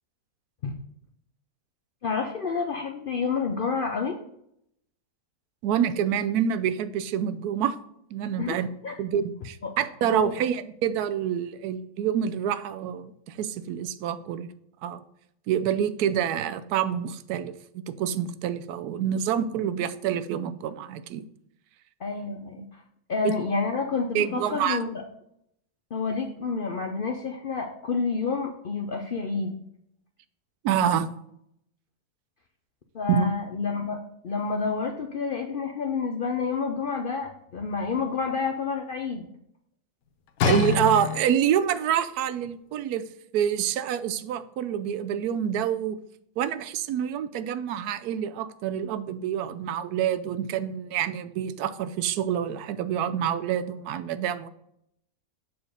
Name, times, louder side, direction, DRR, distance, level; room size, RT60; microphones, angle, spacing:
voice 1, 2.0-4.2 8.4-8.9 9.6-9.7 10.1-10.3 22.0-22.8 23.1-25.0 25.9-29.6 32.9-34.0 34.2-39.3, left 5 dB, 60° left, 4 dB, 0.5 m, -29 dB
voice 2, 5.6-7.8 8.1-8.7 9.0-14.5 14.8-15.0 15.5-21.2 23.2-23.4 24.1-24.8 30.6-31.1 33.1-33.2 40.4-43.0 43.3-46.0 46.4-54.5, right 9 dB, 85° right, 11 dB, 1.1 m, -27 dB
sound 1, 40.4-41.7 42.4-42.5, left 6 dB, 75° left, 1.1 m, -26 dB
7.0 x 4.3 x 5.0 m, 0.74 s
omnidirectional pair, 1.6 m